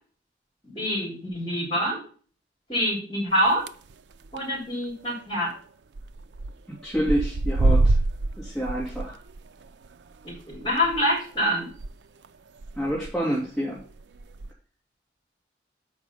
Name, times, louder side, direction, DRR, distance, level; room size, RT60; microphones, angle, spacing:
voice 1, 0.6-2.0 2.7-3.6 4.3-5.5 10.2-11.7, equal, 30° left, 0 dB, 3.5 m, -26 dB
sound 1, 3.5-3.9 4.2-4.6 4.8-4.9 5.1-5.2 6.0-6.5 6.8-11.9 12.2-12.3 12.6-13.1 13.8-14.5, right 2 dB, 70° right, 0.4 m, -26 dB
voice 2, 6.7-8.0 8.4-9.2 12.8-13.8, equal, ahead, -7 dB, 2.4 m, -28 dB
7.3 x 5.3 x 5.7 m, 0.42 s
head